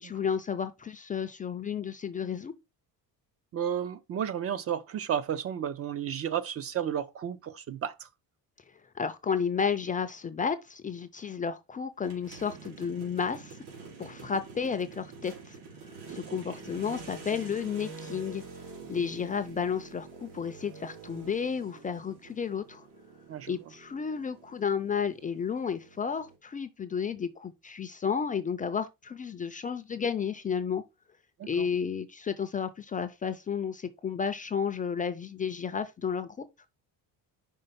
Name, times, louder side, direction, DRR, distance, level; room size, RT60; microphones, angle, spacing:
voice 1, 0.0-2.5 8.9-13.6 14.0-18.4 18.9-22.9 23.5-30.8 31.4-36.5, left 6 dB, 20° left, 0.4 m, -32 dB
voice 2, 3.5-8.1 16.1-16.4 23.3-23.6 31.4-31.7, right 9 dB, 40° right, 0.5 m, -33 dB
sound 1, 12.0-26.3, right 4 dB, 85° right, 2.7 m, -47 dB
5.4 x 3.8 x 5.6 m
cardioid pair, 160°, 39 cm